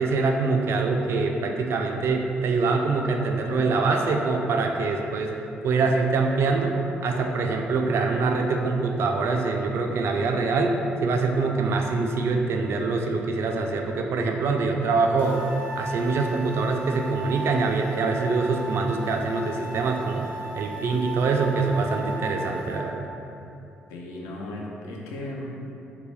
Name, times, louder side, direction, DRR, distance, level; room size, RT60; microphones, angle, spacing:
voice 1, 0.0-5.3 5.6-6.8 7.0-15.4 15.8-23.1, right 4 dB, 50° right, 3 dB, 0.3 m, -24 dB
sound 1, 15.2-22.8, right 2 dB, 30° left, 1.1 m, -36 dB
voice 2, 23.9-25.5, left 1 dB, 65° left, -2 dB, 0.5 m, -36 dB
3.8 x 2.2 x 3.2 m, 2.8 s
figure-of-eight pair, 45°, 6 cm